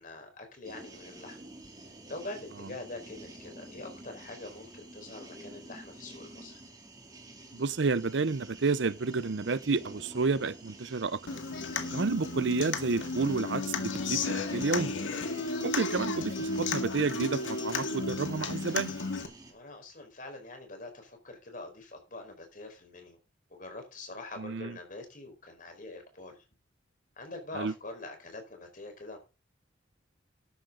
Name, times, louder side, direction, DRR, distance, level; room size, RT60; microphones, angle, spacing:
voice 1, 0.0-1.4 2.1-6.6 15.3-15.5 19.5-23.2 23.5-26.5 27.2-29.2, left 2 dB, 45° left, 4.5 m, -44 dB
sound 1, 0.6-19.5, right 2 dB, 20° right, 2.7 m, -49 dB
voice 2, 7.5-11.2 11.9-15.0 15.6-18.9 24.4-24.8 27.5-27.7, right 4 dB, 65° right, 0.6 m, -30 dB
Human voice / Acoustic guitar, 11.3-19.3, left 3 dB, 80° left, 2.1 m, -33 dB
12.5 x 10.5 x 3.8 m
head